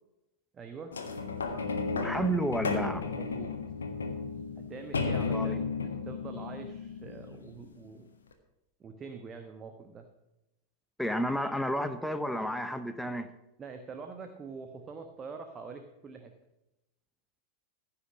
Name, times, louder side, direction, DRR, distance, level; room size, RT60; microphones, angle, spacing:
voice 1, 0.5-0.9 3.1-3.5 4.6-5.6 6.0-8.1 8.8-10.1 13.6-16.3, right 5 dB, 20° right, 5 dB, 1.1 m, -44 dB
sound 1, 0.9-7.7 8.3-8.4, left 4 dB, 70° left, 1.5 m, -34 dB
voice 2, 1.9-3.1 5.3-5.6 11.0-13.3, equal, ahead, 9 dB, 0.8 m, -31 dB
15.0 x 5.9 x 7.1 m, 0.92 s
figure-of-eight pair, 90°, 0 cm